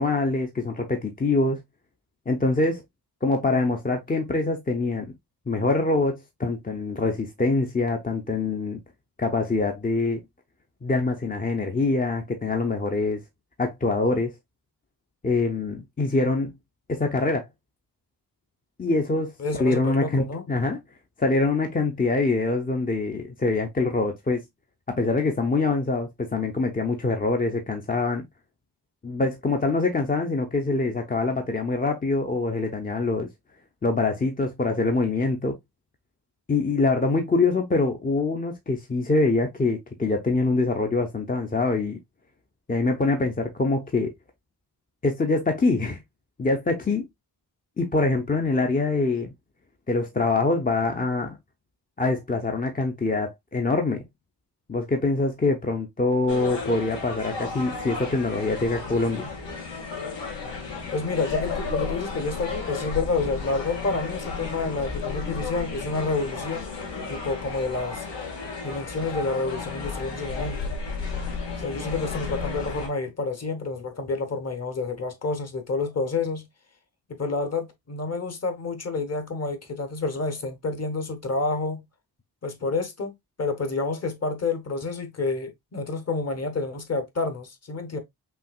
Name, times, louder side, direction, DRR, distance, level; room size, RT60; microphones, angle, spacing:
voice 1, 0.0-1.6 2.3-2.8 3.2-5.1 5.5-8.8 9.2-10.2 10.8-13.2 13.6-14.3 15.2-16.5 16.9-17.5 18.8-20.8 21.2-24.4 24.9-28.3 29.0-33.3 33.8-35.6 36.5-42.0 42.7-44.1 45.0-46.0 46.4-47.1 47.8-49.3 49.9-51.4 52.0-54.1 54.7-59.3, left 3 dB, 20° left, 0.5 m, -24 dB
voice 2, 19.4-20.4 60.9-66.7 67.1-68.1 68.6-70.8 71.6-76.5 77.1-81.8 82.4-88.0, left 3 dB, 35° left, 0.9 m, -29 dB
sound 1, 56.3-72.9, left 4 dB, 85° left, 2.0 m, -33 dB
5.6 x 2.8 x 2.3 m
wide cardioid pair, 130°, 42 cm